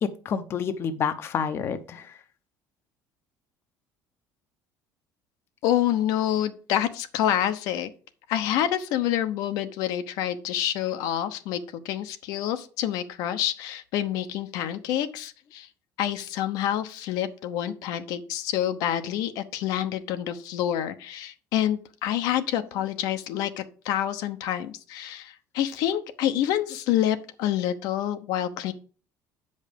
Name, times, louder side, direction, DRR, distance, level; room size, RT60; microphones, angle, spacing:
voice 1, 0.0-2.0, left 7 dB, 40° left, 10 dB, 0.7 m, -28 dB
voice 2, 5.6-7.9 8.3-15.7 16.0-28.7, left 11 dB, 75° left, 10 dB, 0.9 m, -27 dB
8.2 x 5.3 x 5.2 m, 0.38 s
cardioid pair, 145°, 7 cm